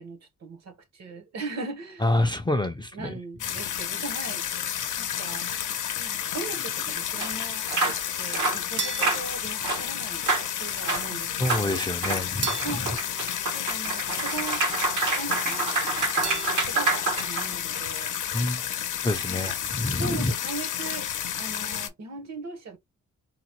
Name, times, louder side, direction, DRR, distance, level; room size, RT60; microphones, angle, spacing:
voice 1, 0.0-2.1 2.9-5.5 5.9-10.3 10.6-11.8 12.6-14.6 15.2-18.1 19.3-19.6 20.0-22.8, right 3 dB, 60° right, 0.9 m, -39 dB
voice 2, 2.0-3.1 11.4-12.6 18.3-18.6 19.0-20.3, left 1 dB, 15° left, 0.4 m, -27 dB
sound 1, 3.4-21.9, left 9 dB, 80° left, 0.6 m, -31 dB
sound 2, 7.2-7.3 7.7-8.0 8.3-8.6 9.0-9.2 9.6-9.8 10.2-10.5 10.8-11.0 11.5-11.7 12.0-17.8, right 3 dB, 80° right, 1.0 m, -27 dB
sound 3, 8.8-10.3 12.4-14.3 16.2-17.4, right 4 dB, 40° right, 0.6 m, -37 dB
3.9 x 2.0 x 2.9 m
wide cardioid pair, 145°, 30 cm